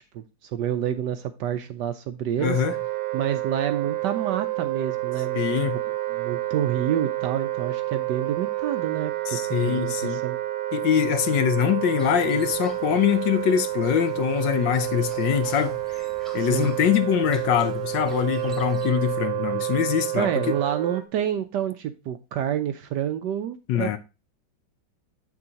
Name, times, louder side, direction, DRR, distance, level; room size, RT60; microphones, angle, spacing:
voice 1, 0.1-2.6 3.1-5.4 6.1-10.4 16.4-16.7 20.2-23.9, right 10 dB, 75° right, 1.0 m, -28 dB
voice 2, 2.4-2.7 5.3-5.8 9.3-10.2 10.7-16.1 16.3-20.5 23.7-24.0, left 9 dB, 70° left, 1.3 m, -23 dB
Wind instrument woodwind instrument, 2.4-21.0, right 17 dB, 90° right, 1.9 m, -29 dB
sound 1, 12.0-18.9, right 1 dB, ahead, 1.2 m, -48 dB
7.7 x 6.1 x 2.8 m
omnidirectional pair, 2.2 m